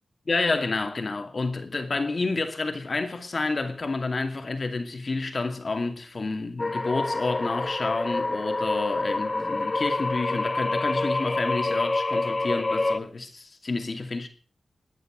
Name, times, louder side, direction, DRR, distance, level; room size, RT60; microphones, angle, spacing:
voice 1, 0.3-14.3, left 3 dB, 50° left, 2.5 m, -29 dB
Scary audio, 6.6-13.0, left 2 dB, 35° left, 1.0 m, -27 dB
21.0 x 9.3 x 6.2 m
cardioid pair, 65°, 0 cm